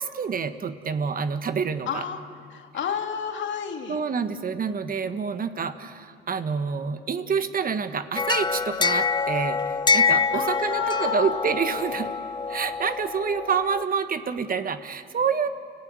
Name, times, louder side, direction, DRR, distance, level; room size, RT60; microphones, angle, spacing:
voice 1, 0.0-2.1 3.9-12.1 12.5-15.5, right 6 dB, 45° right, 10 dB, 1.4 m, -27 dB
voice 2, 1.9-2.2 2.5-4.0 10.3-11.4, left 7 dB, 70° left, 5 dB, 2.2 m, -30 dB
sound 1, 8.2-13.8, left 5 dB, 20° left, 0.6 m, -25 dB
30.0 x 15.0 x 9.6 m, 2.3 s
cardioid pair, 90°, 20 cm